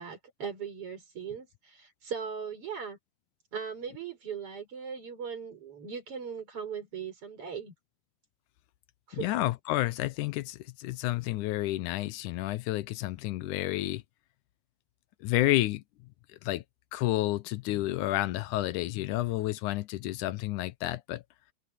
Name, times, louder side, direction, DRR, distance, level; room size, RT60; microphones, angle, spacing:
voice 1, 0.0-3.0 3.5-7.7 9.1-9.3, right 6 dB, 40° right, 5.7 m, -39 dB
voice 2, 9.1-14.0 15.2-15.8 16.4-16.6 16.9-21.2, left 16 dB, 75° left, 1.9 m, -30 dB
omnidirectional pair, 4.1 m